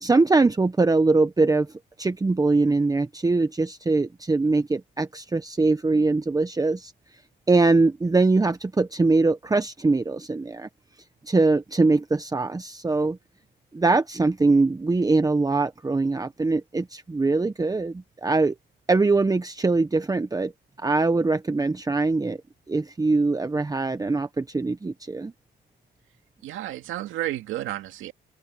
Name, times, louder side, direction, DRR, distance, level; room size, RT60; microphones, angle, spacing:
voice 1, 0.0-1.7 2.0-6.9 7.5-10.7 11.2-13.2 13.7-18.5 18.9-20.5 20.8-22.4 22.7-25.3, right 3 dB, 20° right, 1.0 m, -22 dB
voice 2, 26.4-28.1, right 14 dB, 90° right, 2.3 m, -31 dB
open air
cardioid pair, 90°, 20 cm